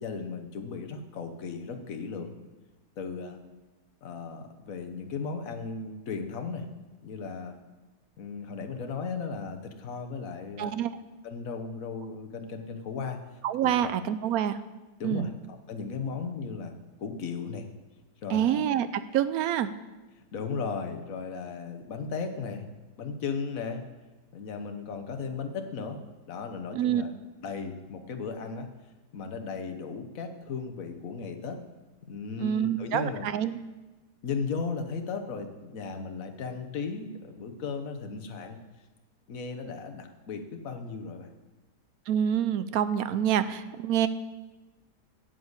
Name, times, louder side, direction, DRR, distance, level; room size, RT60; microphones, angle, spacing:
voice 1, 0.0-2.3 3.0-3.4 4.0-6.7 7.0-7.6 8.2-10.7 11.2-13.2 13.6-13.9 15.0-17.7 18.2-18.7 20.3-22.7 23.0-23.8 24.3-27.1 27.4-28.7 29.1-31.6 32.1-33.3 34.2-38.6 39.3-41.3, left 5 dB, 55° left, 6 dB, 1.4 m, -36 dB
voice 2, 10.6-10.9 13.4-14.6 15.0-15.3 18.3-19.7 26.7-27.0 32.4-33.6 42.1-44.1, right 10 dB, 70° right, 13 dB, 0.9 m, -27 dB
9.3 x 7.9 x 8.1 m, 1.1 s
omnidirectional pair, 1.9 m